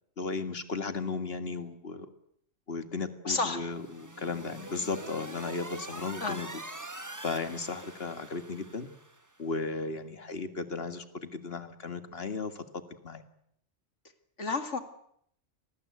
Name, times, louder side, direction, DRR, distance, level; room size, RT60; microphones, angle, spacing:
voice 1, 0.2-2.1 2.7-6.5 7.2-8.9 9.4-13.2, left 4 dB, 50° left, 9 dB, 2.1 m, -35 dB
voice 2, 3.2-3.7 6.2-6.4 14.4-14.8, left 4 dB, 70° left, 8 dB, 2.5 m, -31 dB
sound 1, 3.7-9.3, right 2 dB, 15° right, 1.2 m, -44 dB
27.0 x 19.5 x 8.2 m, 0.70 s
omnidirectional pair, 1.3 m